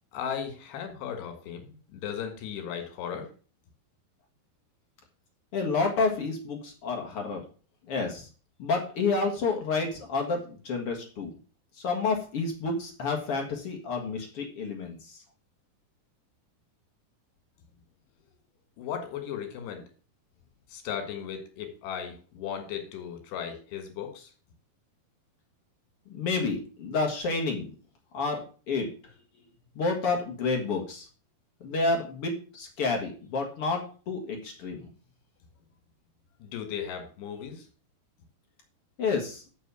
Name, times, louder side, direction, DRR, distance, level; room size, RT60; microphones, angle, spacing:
voice 1, 0.1-3.3 18.8-19.8 20.7-24.3 36.4-37.7, left 8 dB, 85° left, 6 dB, 4.1 m, -36 dB
voice 2, 5.5-7.4 7.9-8.3 8.6-11.3 11.8-15.2 26.1-27.7 28.1-28.9 29.8-31.1 31.6-34.9 39.0-39.4, left 3 dB, 50° left, 2 dB, 1.7 m, -29 dB
6.9 x 6.5 x 6.8 m, 0.39 s
omnidirectional pair, 4.7 m